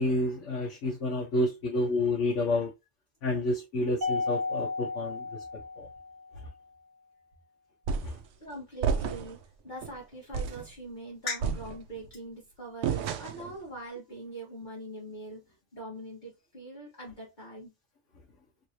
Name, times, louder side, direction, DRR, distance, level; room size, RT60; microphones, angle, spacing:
voice 1, 0.0-2.7 3.2-5.3 5.8-5.9 8.0-8.2 11.3-11.4, left 2 dB, 80° left, 1.2 m, -29 dB
Mallet percussion, 4.0-6.4, left 3 dB, 45° right, 1.1 m, -33 dB
sound 1, 7.9-8.2 8.8-9.4 9.8-10.0 10.3-10.7 11.4-12.1 12.8-13.5, right 6 dB, 90° right, 0.9 m, -31 dB
voice 2, 8.4-9.4 9.6-17.7, right 2 dB, 45° left, 1.3 m, -43 dB
3.3 x 3.1 x 2.7 m
omnidirectional pair, 1.2 m